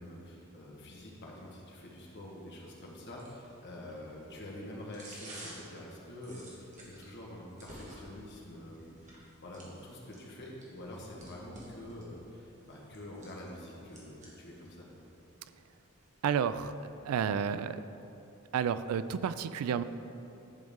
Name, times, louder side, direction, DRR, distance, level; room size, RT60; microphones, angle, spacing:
voice 1, 0.0-14.9, left 1 dB, 55° left, -2 dB, 1.4 m, -46 dB
sound 1, 0.9-16.9, right 1 dB, 35° right, 1.5 m, -55 dB
voice 2, 16.2-16.8 17.0-17.8 18.5-19.8, right 7 dB, 80° right, 13 dB, 0.3 m, -31 dB
10.5 x 5.2 x 3.7 m, 2.9 s
head